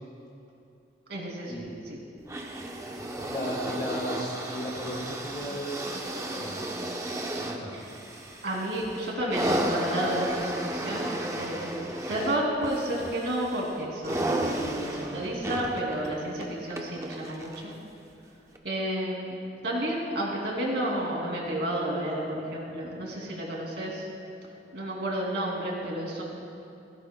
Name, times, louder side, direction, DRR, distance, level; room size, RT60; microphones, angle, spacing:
voice 1, 1.1-1.5 1.8-2.0 7.7-7.9 8.4-17.7 18.6-19.4 19.6-24.1 24.7-26.2, right 1 dB, 70° right, -2 dB, 2.6 m, -31 dB
sound 1, 2.3-17.7 18.5-18.6, right 1 dB, 15° right, 0.7 m, -34 dB
voice 2, 3.2-6.7 7.4-7.7, equal, 35° left, -4 dB, 2.1 m, -35 dB
16.5 x 16.0 x 2.2 m, 2.6 s
head